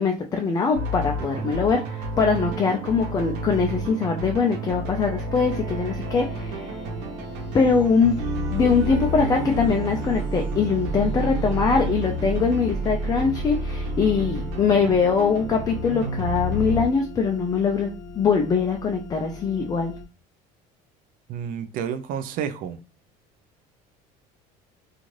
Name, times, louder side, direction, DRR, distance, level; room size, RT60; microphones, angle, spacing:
voice 1, 0.0-6.7 7.5-8.1 8.5-19.9, left 5 dB, 25° left, 0.3 m, -22 dB
sound 1, 0.7-16.9, right 1 dB, 85° right, 0.9 m, -30 dB
sound 2, 5.4-20.0, left 3 dB, 70° left, 0.7 m, -41 dB
voice 2, 21.3-22.8, right 8 dB, 55° right, 0.4 m, -30 dB
2.5 x 2.4 x 3.1 m
cardioid pair, 135°, 17 cm